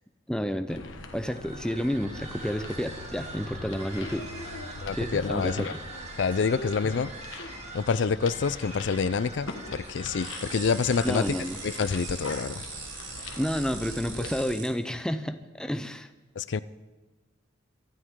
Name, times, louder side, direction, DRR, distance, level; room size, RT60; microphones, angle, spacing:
voice 1, 0.3-0.8 1.1-4.3 4.9-5.7 11.0-11.6 13.4-16.1, equal, 5° left, 9 dB, 0.6 m, -30 dB
sound 1, 0.7-14.4, left 3 dB, 85° left, 1.4 m, -42 dB
sound 2, 1.2-12.6, right 3 dB, 35° right, 2.0 m, -44 dB
voice 2, 4.8-5.7 6.2-7.1 7.7-11.2 11.6-12.6 16.4-16.6, left 5 dB, 65° left, 15 dB, 0.4 m, -27 dB
sound 3, 10.2-14.7, right 5 dB, 75° right, 3.0 m, -41 dB
24.0 x 13.0 x 3.7 m, 1.2 s
head